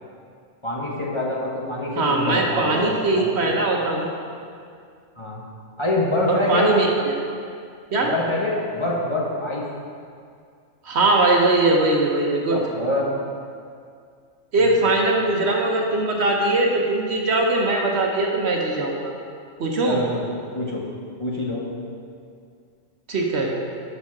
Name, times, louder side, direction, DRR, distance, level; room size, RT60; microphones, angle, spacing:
voice 1, 0.6-3.6 5.2-5.4 5.8-6.7 8.0-9.6 12.5-13.1 14.6-14.7 19.8-20.2 20.5-20.8 21.2-21.7, left 2 dB, 25° left, -5 dB, 1.0 m, -25 dB
voice 2, 2.0-4.1 6.3-7.1 7.9-8.1 10.8-12.6 14.5-19.1 19.6-20.0 23.1-23.5, right 2 dB, 55° right, 0 dB, 1.1 m, -21 dB
7.1 x 6.6 x 5.9 m, 2.3 s
omnidirectional pair, 1.4 m